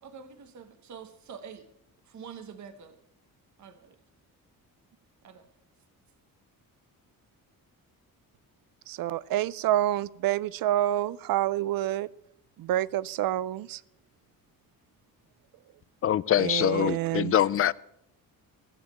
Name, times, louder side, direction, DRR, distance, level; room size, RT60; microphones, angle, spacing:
voice 1, 0.0-1.7 2.0-3.0 3.6-4.0 5.2-5.5, right 6 dB, 55° right, 1.2 m, -46 dB
voice 2, 8.9-12.1 12.6-13.8 16.4-17.3, right 13 dB, 75° right, 0.5 m, -28 dB
voice 3, 16.0-17.7, left 11 dB, 40° left, 0.4 m, -24 dB
15.5 x 7.3 x 7.7 m
cardioid pair, 120°, 35 cm